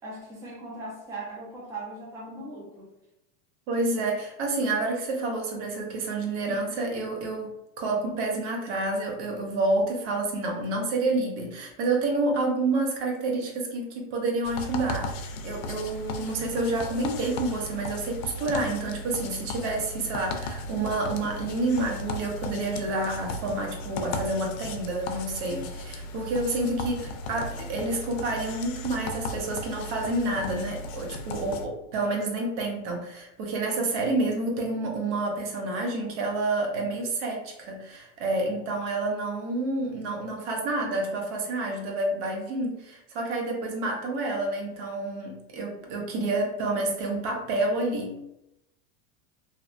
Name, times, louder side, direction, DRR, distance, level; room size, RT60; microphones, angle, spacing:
voice 1, 0.0-2.9, right 2 dB, 10° right, -6 dB, 0.5 m, -39 dB
voice 2, 3.7-48.2, right 2 dB, 65° right, 1 dB, 0.8 m, -29 dB
sound 1, 14.4-31.7, left 2 dB, 85° left, 0.5 m, -36 dB
2.7 x 2.1 x 2.5 m, 0.88 s
supercardioid pair, 150°, 38 cm